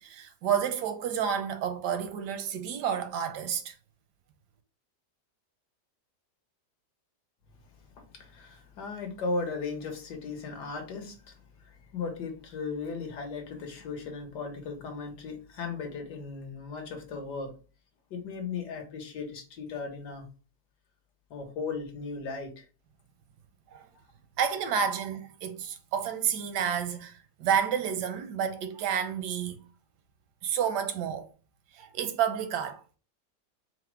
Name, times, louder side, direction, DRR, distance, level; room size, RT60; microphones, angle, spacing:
voice 1, 0.0-3.7 23.7-23.9 24.4-29.6 30.4-31.3 31.7-33.0, right 8 dB, 85° right, 1.2 m, -30 dB
voice 2, 8.1-17.5 18.1-20.3 21.3-22.6, left 4 dB, 75° left, 1.6 m, -37 dB
4.5 x 2.0 x 4.5 m
omnidirectional pair, 1.8 m